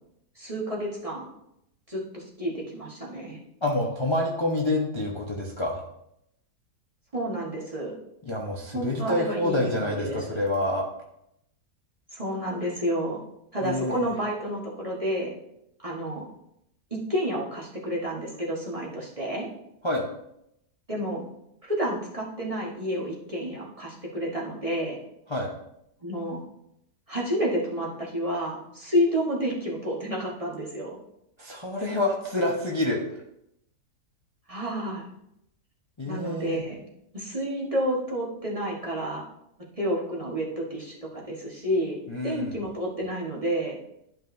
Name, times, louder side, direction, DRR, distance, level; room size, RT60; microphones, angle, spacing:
voice 1, 0.4-1.3 1.9-3.4 7.1-8.0 8.7-10.4 12.1-13.2 13.5-15.3 15.8-16.2 16.9-19.5 20.9-21.2 21.6-25.0 26.0-26.4 27.1-31.0 34.5-35.1 36.0-36.8 37.1-39.2 39.8-43.8, equal, 20° right, -4 dB, 1.3 m, -30 dB
voice 2, 3.6-5.8 8.2-10.8 13.6-14.0 19.8-20.1 25.3-25.5 31.4-33.0 36.0-36.6 42.1-42.6, left 1 dB, 20° left, -2 dB, 0.8 m, -27 dB
12.0 x 5.4 x 2.7 m, 0.79 s
omnidirectional pair, 1.8 m